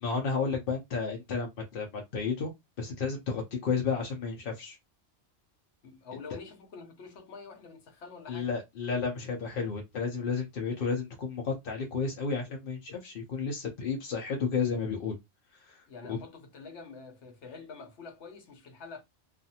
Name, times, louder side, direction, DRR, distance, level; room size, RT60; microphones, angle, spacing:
voice 1, 0.0-2.5 2.8-4.8 8.3-15.2 15.5-16.2, left 5 dB, 60° left, 0.7 m, -32 dB
voice 2, 5.8-8.5 15.9-19.0, left 4 dB, 75° left, 1.1 m, -46 dB
2.5 x 2.3 x 2.7 m
omnidirectional pair, 1.2 m